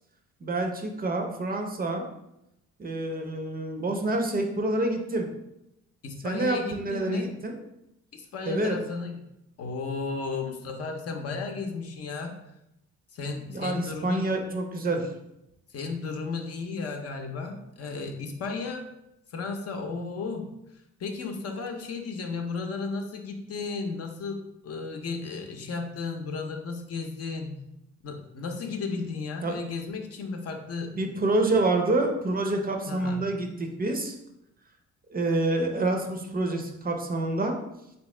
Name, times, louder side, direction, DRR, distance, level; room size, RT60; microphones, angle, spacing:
voice 1, 0.4-2.1 2.8-5.3 6.2-7.6 8.5-8.8 13.5-15.1 29.4-29.6 31.0-34.1 35.1-37.6, right 2 dB, 30° right, 3 dB, 0.5 m, -27 dB
voice 2, 6.0-7.3 8.1-9.2 9.6-12.4 13.1-14.2 15.7-18.8 19.3-20.5 21.0-27.6 28.0-30.9 31.5-31.6 32.9-33.2, left 4 dB, 55° left, 4 dB, 0.6 m, -34 dB
3.5 x 2.9 x 3.1 m, 0.85 s
cardioid pair, 90°, 30 cm